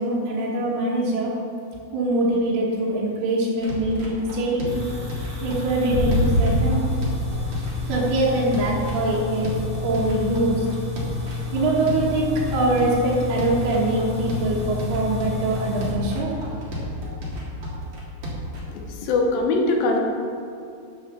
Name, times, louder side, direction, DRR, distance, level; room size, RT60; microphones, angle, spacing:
voice 1, 0.0-1.3 1.9-4.7 5.4-6.8 7.9-9.5 9.8-10.7 11.5-16.3, right 2 dB, 85° right, -6 dB, 3.4 m, -23 dB
sound 1, 3.6-18.6, equal, 40° right, 2.1 m, -33 dB
sound 2, 4.6-15.9, left 6 dB, 20° right, 2.4 m, -32 dB
sound 3, 5.9-17.0, equal, 35° left, 3.2 m, -30 dB
voice 2, 18.7-20.0, left 2 dB, 75° left, 1 dB, 2.7 m, -22 dB
9.0 x 6.5 x 6.7 m, 2.6 s
omnidirectional pair, 4.4 m